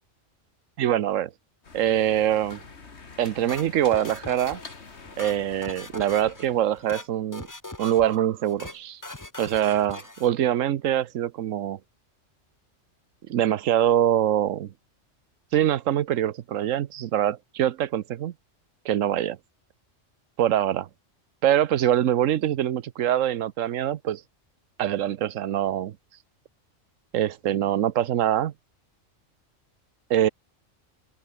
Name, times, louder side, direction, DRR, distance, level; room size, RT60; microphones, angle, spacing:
voice 1, 0.8-1.3 1.7-2.6 3.2-4.6 5.2-7.5 7.8-9.0 9.4-11.8 13.3-14.7 15.5-18.3 18.8-19.4 20.4-20.9 21.4-24.2 24.8-26.0 27.1-28.5 30.1-30.3, right 11 dB, 85° right, 1.2 m, -24 dB
sound 1, 1.6-6.8, left 4 dB, 60° left, 2.4 m, -46 dB
sound 2, 3.5-4.8 5.1-6.5 6.7-7.1 7.3-8.2 8.4-8.8 9.0-10.3, left 2 dB, 15° left, 1.4 m, -40 dB
omnidirectional pair, 1.3 m